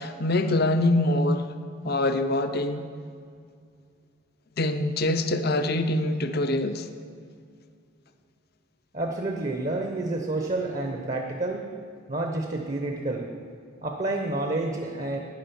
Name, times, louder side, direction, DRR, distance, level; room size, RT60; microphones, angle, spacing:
voice 1, 0.0-1.6 1.8-2.9 4.6-6.9, left 1 dB, 45° left, 0.6 m, -24 dB
voice 2, 8.9-11.7 12.1-13.3 13.8-15.2, right 2 dB, 35° right, 0.8 m, -29 dB
11.5 x 9.6 x 7.0 m
head